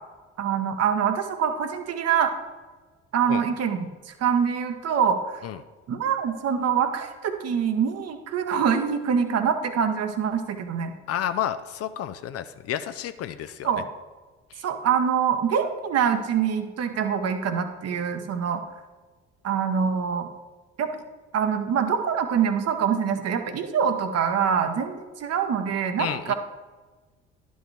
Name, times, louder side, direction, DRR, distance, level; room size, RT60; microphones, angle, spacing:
voice 1, 0.4-2.3 3.1-3.9 4.2-5.4 5.9-10.9 13.6-13.9 14.6-18.6 19.4-20.3 20.8-20.9 21.3-26.3, right 7 dB, 45° right, 7 dB, 0.9 m, -25 dB
voice 2, 11.1-13.7 14.5-14.7 26.0-26.3, left 10 dB, 45° left, 11 dB, 0.5 m, -31 dB
11.0 x 5.4 x 3.2 m, 1.3 s
figure-of-eight pair, 50°, 35 cm